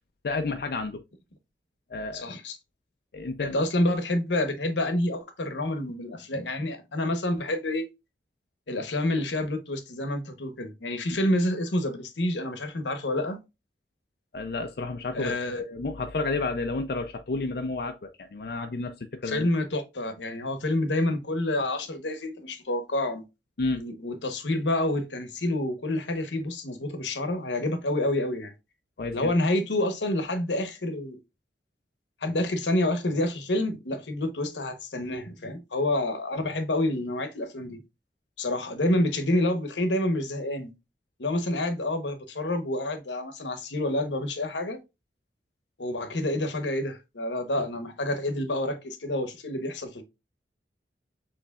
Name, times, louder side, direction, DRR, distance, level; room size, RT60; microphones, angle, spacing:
voice 1, 0.2-1.0 1.9-2.3 3.1-3.6 14.3-19.5 23.6-23.8 29.0-29.3, left 3 dB, 60° left, 0.5 m, -31 dB
voice 2, 2.1-2.6 3.4-7.9 8.7-13.4 15.1-15.6 19.2-23.2 23.7-28.5 29.1-31.2 32.2-37.8 38.4-40.7 41.2-44.8 45.8-50.0, left 1 dB, 90° left, 1.0 m, -28 dB
6.6 x 3.2 x 2.3 m
head